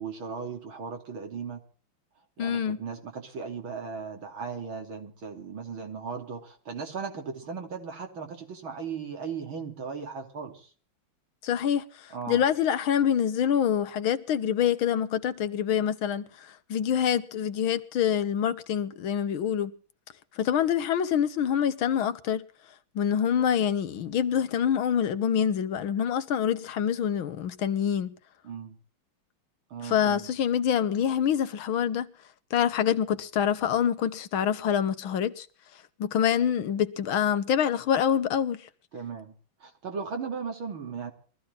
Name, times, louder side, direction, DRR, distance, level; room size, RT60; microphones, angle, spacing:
voice 1, 0.0-1.6 2.4-10.7 12.1-12.4 28.4-28.8 29.7-30.3 38.9-39.3 39.6-41.1, right 5 dB, 80° right, 3.7 m, -37 dB
voice 2, 2.4-2.8 11.4-19.7 20.4-22.4 23.0-28.1 29.8-32.1 32.5-35.5 36.0-38.6, left 9 dB, 80° left, 1.9 m, -26 dB
22.5 x 14.5 x 4.0 m
omnidirectional pair, 2.2 m